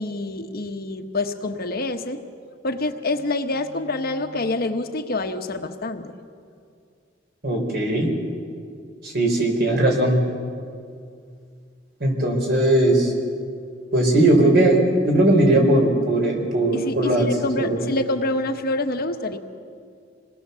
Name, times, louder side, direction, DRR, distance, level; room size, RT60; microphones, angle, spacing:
voice 1, 0.0-2.2 2.6-6.2 16.7-19.4, left 2 dB, 55° left, 6 dB, 1.2 m, -26 dB
voice 2, 7.4-8.1 9.0-10.2 12.0-13.1 13.9-14.8 15.0-17.3 17.6-17.8, right 1 dB, 55° right, 1 dB, 4.6 m, -18 dB
27.5 x 19.5 x 7.0 m, 2.3 s
head